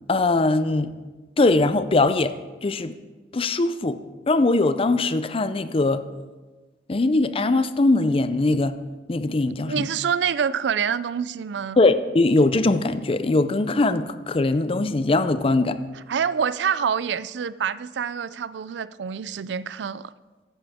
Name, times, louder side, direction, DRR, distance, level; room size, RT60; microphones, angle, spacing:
voice 1, 0.1-0.9 1.4-2.3 2.6-2.9 3.3-4.0 4.3-6.0 6.9-8.7 9.1-9.9 11.8-15.8, left 2 dB, 30° left, 0.5 m, -21 dB
voice 2, 9.7-11.8 16.1-20.1, right 7 dB, 80° right, 0.4 m, -26 dB
15.0 x 10.0 x 3.6 m
head